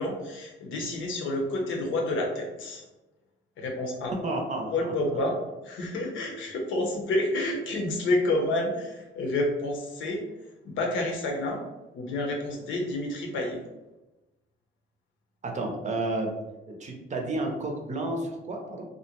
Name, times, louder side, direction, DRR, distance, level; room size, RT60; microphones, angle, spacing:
voice 1, 0.0-2.8 3.6-4.1 4.7-5.4 5.6-10.2 10.6-11.6 11.9-13.6, left 1 dB, 80° left, 1 dB, 0.7 m, -29 dB
voice 2, 4.1-4.9 15.4-16.3 16.7-18.8, right 2 dB, 35° right, 2 dB, 0.5 m, -31 dB
2.4 x 2.1 x 2.8 m, 1.0 s
cardioid pair, 90°, 20 cm